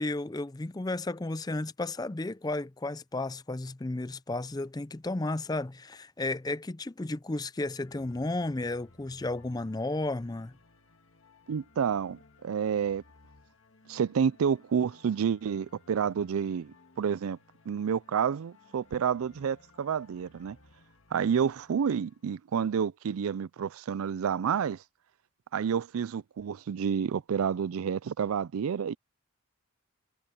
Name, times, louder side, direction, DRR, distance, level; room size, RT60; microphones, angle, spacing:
voice 1, 0.0-10.5, left 2 dB, 15° left, 0.4 m, -33 dB
sound 1, 7.8-22.3, left 3 dB, 65° left, 1.9 m, -60 dB
voice 2, 11.5-13.0 13.9-17.4 17.7-20.6 21.1-24.8 25.5-28.9, right 7 dB, 75° right, 0.4 m, -29 dB
head